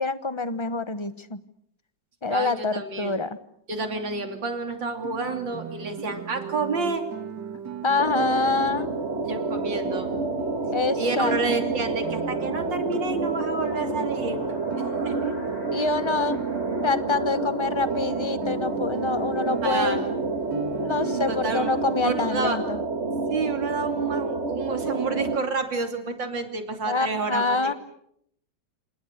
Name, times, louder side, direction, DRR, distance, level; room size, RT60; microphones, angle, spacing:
voice 1, 0.0-1.4 2.2-3.4 7.8-8.9 10.7-11.6 15.7-16.4 16.8-20.0 20.8-22.8 26.9-27.7, left 3 dB, 20° left, 13 dB, 0.8 m, -26 dB
voice 2, 2.3-3.2 3.7-7.0 9.2-10.1 11.0-14.4 15.0-15.3 19.6-20.0 21.3-21.7 22.0-22.6 23.3-27.8, right 4 dB, 85° right, 6 dB, 3.6 m, -29 dB
Guitar, 5.0-22.4, right 6 dB, 70° right, 2.7 m, -37 dB
sound 1, 8.0-25.4, right 3 dB, 40° right, 1.9 m, -29 dB
sound 2, 8.5-20.9, left 2 dB, 90° left, 4.6 m, -47 dB
28.0 x 28.0 x 6.6 m, 0.72 s
omnidirectional pair, 2.0 m